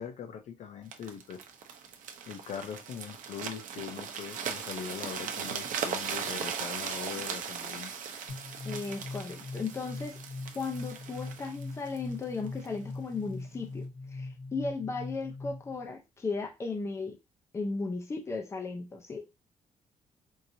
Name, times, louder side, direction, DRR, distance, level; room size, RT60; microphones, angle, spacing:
voice 1, 0.0-1.4 2.3-7.9, left 8 dB, 60° left, 0.6 m, -41 dB
sound 1, 0.9-12.8 13.4-13.5, right 7 dB, 75° right, 0.7 m, -38 dB
sound 2, 8.3-15.8, left 3 dB, 45° left, 1.4 m, -41 dB
voice 2, 8.6-10.2 10.5-17.2 17.5-19.2, left 4 dB, 20° left, 0.6 m, -36 dB
4.6 x 2.7 x 2.6 m
wide cardioid pair, 170°, 13 cm